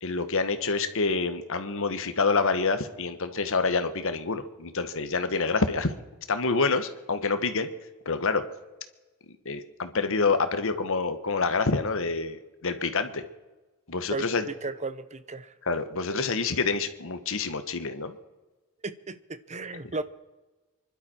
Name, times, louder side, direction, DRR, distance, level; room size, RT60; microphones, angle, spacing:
voice 1, 0.0-5.9 6.3-7.7 8.0-8.4 9.4-13.2 13.9-14.5 15.6-18.2, left 4 dB, 65° left, 10 dB, 1.3 m, -27 dB
voice 2, 14.1-15.5 18.8-20.0, right 3 dB, 30° right, 13 dB, 0.8 m, -35 dB
25.5 x 12.0 x 4.4 m, 1.2 s
head